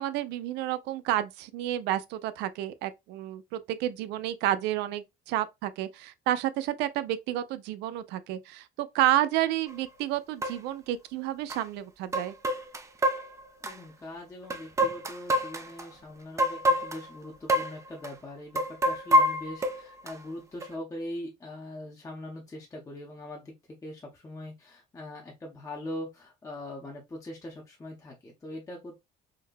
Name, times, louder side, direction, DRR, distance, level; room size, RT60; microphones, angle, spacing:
voice 1, 0.0-12.3, right 13 dB, 90° right, 0.4 m, -30 dB
sound 1, 9.7-9.8 10.4-10.6 11.5-11.6 12.1-13.7 14.5-15.8 16.4-17.1 17.5-17.8 18.0-18.1 18.6-20.1 20.6-20.7, equal, 15° right, 0.4 m, -26 dB
voice 2, 13.6-23.5 23.8-29.0, left 1 dB, 20° left, 0.7 m, -41 dB
3.9 x 2.1 x 2.4 m
cardioid pair, 110°, 17 cm